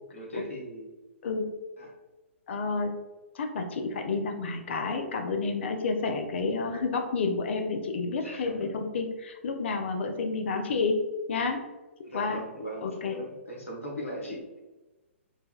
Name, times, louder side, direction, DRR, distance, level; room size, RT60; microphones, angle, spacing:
voice 1, 0.1-0.9 1.8-1.9 8.2-8.7 12.0-14.6, equal, 85° left, -3 dB, 0.9 m, -39 dB
voice 2, 2.5-2.9 3.3-11.7 12.1-12.4 12.8-13.2, left 4 dB, 60° left, 4 dB, 0.4 m, -30 dB
3.2 x 2.1 x 2.3 m, 1.1 s
figure-of-eight pair, 120°, 7 cm